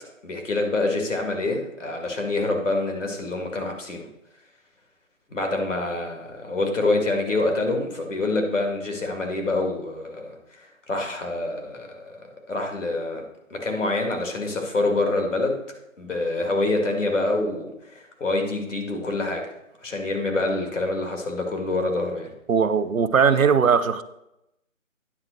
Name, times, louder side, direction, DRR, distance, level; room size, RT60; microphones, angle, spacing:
voice 1, 0.2-4.1 5.3-13.2 13.5-15.6 16.0-19.5 19.8-22.3, left 2 dB, 65° left, 3 dB, 2.2 m, -26 dB
voice 2, 22.5-24.0, right 6 dB, 85° right, 12 dB, 0.8 m, -19 dB
9.6 x 3.7 x 6.4 m, 0.84 s
figure-of-eight pair, 165°, 40 cm